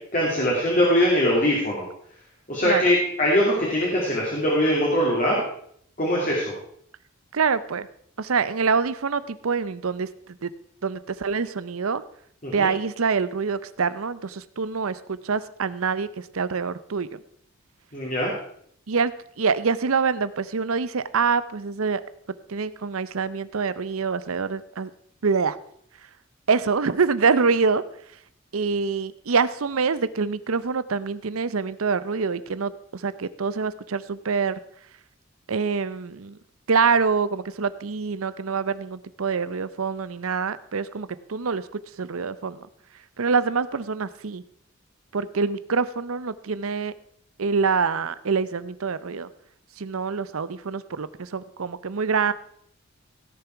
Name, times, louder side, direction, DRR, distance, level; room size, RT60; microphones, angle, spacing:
voice 1, 0.1-1.9 2.5-5.4 6.0-6.5 12.4-12.7 17.9-18.3, equal, 35° left, -4 dB, 2.6 m, -22 dB
voice 2, 7.3-7.9 8.2-10.5 10.8-12.0 12.5-17.2 18.9-22.0 22.5-24.9 25.2-25.6 26.5-27.8 28.5-34.6 35.5-36.4 36.7-42.7 43.2-44.4 45.1-46.9 47.4-49.3 49.8-52.3, right 5 dB, 85° right, 16 dB, 0.7 m, -25 dB
16.5 x 7.0 x 4.6 m, 0.66 s
head